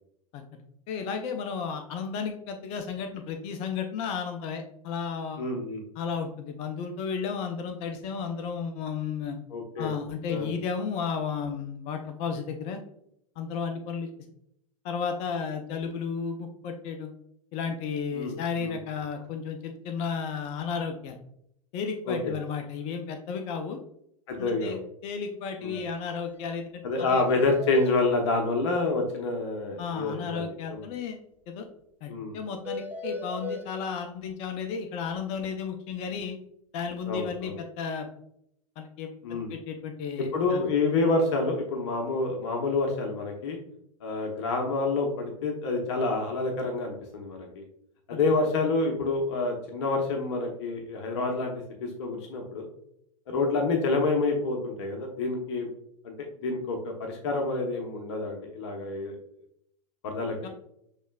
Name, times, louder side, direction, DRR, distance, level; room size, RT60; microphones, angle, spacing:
voice 1, 0.9-5.4 6.0-9.4 9.8-12.8 13.4-14.1 14.8-17.1 17.5-21.2 21.7-23.8 24.4-27.2 29.8-31.2 31.5-31.7 32.0-36.3 36.7-38.1 38.8-40.7 48.1-48.2 60.4-60.5, left 6 dB, 35° left, 5 dB, 0.5 m, -33 dB
voice 2, 5.4-5.8 9.5-9.9 10.3-10.5 18.1-18.8 22.1-22.3 24.3-24.8 25.6-25.8 26.8-30.9 32.1-32.4 37.1-37.5 39.2-39.5 40.3-43.6 44.0-47.6 48.1-51.5 51.8-52.7 53.3-55.7 56.0-59.1 60.0-60.5, left 3 dB, 50° left, 2 dB, 0.9 m, -28 dB
sound 1, 25.7-25.8 26.1-26.2 26.5-26.6 27.0-27.9 32.7-33.6, left 3 dB, 10° right, 1.0 m, -35 dB
6.3 x 3.2 x 2.2 m, 0.73 s
figure-of-eight pair, 90°, 18 cm